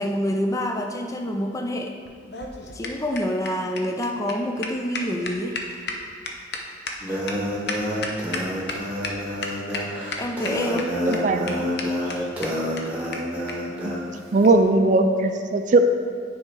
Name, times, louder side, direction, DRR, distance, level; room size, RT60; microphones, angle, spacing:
voice 1, 0.0-1.9 2.7-5.8 7.1-7.2 10.2-10.9, equal, 20° left, 3 dB, 0.4 m, -27 dB
sound 1, 2.0-8.7 9.0-9.1 9.4-9.8 10.1-10.8 11.1-11.2 11.5-11.6 11.8-11.9 12.1-12.2 12.4-12.5 12.8-12.9 13.1-13.2 13.5-13.6 14.4-14.6, left 4 dB, 65° left, 0.8 m, -32 dB
sound 2, 7.0-14.0, equal, 10° right, 1.2 m, -28 dB
voice 2, 11.1-11.7 13.8-13.9 14.3-15.8, right 2 dB, 45° right, 7 dB, 0.4 m, -19 dB
9.7 x 3.6 x 4.5 m, 2.2 s
head